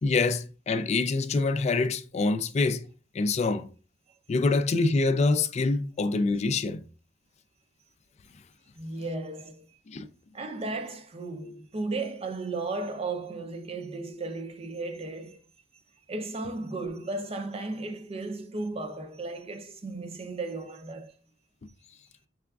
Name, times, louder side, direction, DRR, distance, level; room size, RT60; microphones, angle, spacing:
voice 1, 0.0-2.8 3.1-3.7 4.3-6.8 9.9-10.1, left 3 dB, 40° left, 0.3 m, -25 dB
voice 2, 8.7-9.7 10.3-15.4 16.1-21.1, right 3 dB, 35° right, 0.5 m, -35 dB
4.8 x 3.4 x 2.3 m
head